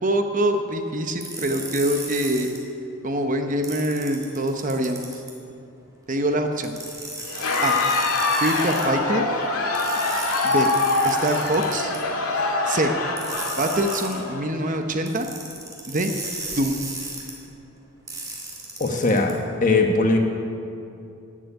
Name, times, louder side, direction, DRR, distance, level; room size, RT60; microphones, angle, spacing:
voice 1, 0.0-2.5 3.0-5.2 6.1-6.8 7.6-7.8 8.4-9.3 10.4-10.7 11.0-11.9 12.7-12.9 13.6-15.3 15.9-16.1 16.5-16.8, right 1 dB, 35° right, 5 dB, 0.8 m, -24 dB
sound 1, 1.2-2.6 3.6-5.3 6.6-8.9 9.7-12.0 13.2-14.2 15.1-17.3 18.1-19.3, right 2 dB, 15° right, 2.5 m, -35 dB
Crowd, 7.2-14.8, left 3 dB, 75° left, 1.8 m, -24 dB
voice 2, 18.8-19.3 19.6-20.2, left 3 dB, 35° left, 2 dB, 1.4 m, -19 dB
14.0 x 7.9 x 9.5 m, 2.6 s
head